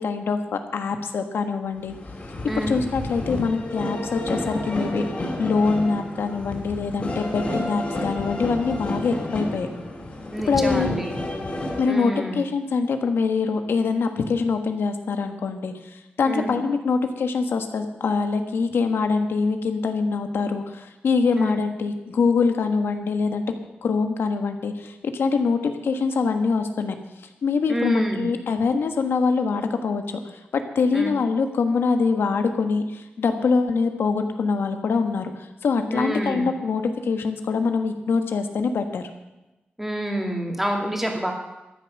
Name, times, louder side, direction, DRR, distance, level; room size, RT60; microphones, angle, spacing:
voice 1, 0.0-1.9 2.6-5.0 5.4-9.7 10.5-10.9 11.8-23.4 23.8-26.9 27.4-30.2 30.5-39.0, left 4 dB, 90° left, 7 dB, 1.3 m, -24 dB
sound 1, 1.8-11.9, left 1 dB, 35° left, 3.6 m, -30 dB
voice 2, 10.3-11.1 11.9-12.4 16.3-16.5 21.3-21.6 27.7-28.2 30.9-31.1 35.9-36.4 39.8-41.3, right 1 dB, 5° right, 1 dB, 2.5 m, -27 dB
13.5 x 10.0 x 6.4 m, 1.0 s
wide cardioid pair, 115°, 4 cm